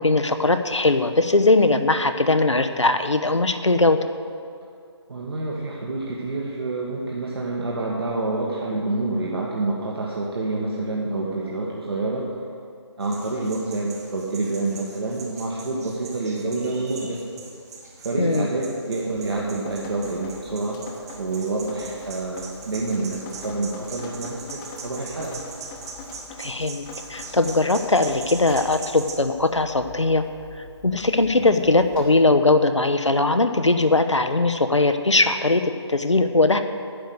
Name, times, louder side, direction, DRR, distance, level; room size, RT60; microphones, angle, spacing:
voice 1, 0.0-4.0 18.2-18.5 26.4-26.8 27.1-30.2 30.6-36.6, left 2 dB, 90° left, 8 dB, 0.9 m, -20 dB
voice 2, 5.1-12.3 13.0-17.2 18.0-20.8 21.1-25.4 31.4-31.6, right 2 dB, 60° right, -4 dB, 1.7 m, -28 dB
sound 1, 13.0-29.1, right 4 dB, 35° right, 1.4 m, -41 dB
Drip, 19.1-32.1, left 3 dB, 15° left, 0.9 m, -44 dB
10.5 x 6.5 x 8.1 m, 2.4 s
figure-of-eight pair, 150°, 15 cm